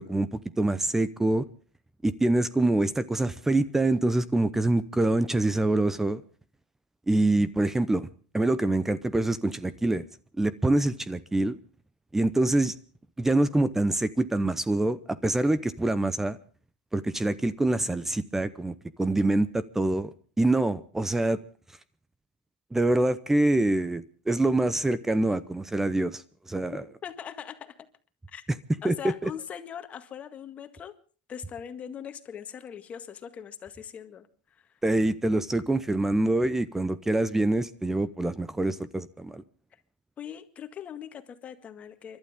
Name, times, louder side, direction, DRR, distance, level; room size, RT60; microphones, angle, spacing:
voice 1, 0.0-1.4 2.0-6.2 7.1-8.1 8.3-10.0 10.4-11.6 12.1-12.7 13.2-16.4 16.9-21.4 22.7-26.2 26.5-26.8 28.8-28.9 29.2-29.3 34.8-39.4, right 2 dB, 10° right, 17 dB, 0.7 m, -25 dB
voice 2, 26.7-27.7 28.3-28.4 28.8-30.9 31.3-34.7 40.2-42.2, left 8 dB, 30° left, 9 dB, 1.8 m, -41 dB
30.0 x 12.0 x 3.6 m, 0.40 s
supercardioid pair, 120°, 5 cm